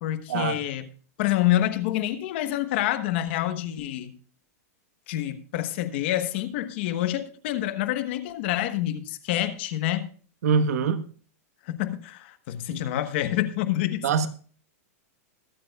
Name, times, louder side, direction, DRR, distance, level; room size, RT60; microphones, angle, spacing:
voice 1, 0.0-0.9 1.2-4.2 5.1-10.1 11.6-14.3, left 13 dB, 45° left, 1.2 m, -27 dB
voice 2, 10.4-11.0 14.0-14.3, right 6 dB, 70° right, 1.2 m, -23 dB
22.0 x 8.6 x 2.4 m
supercardioid pair, 170°, 9 cm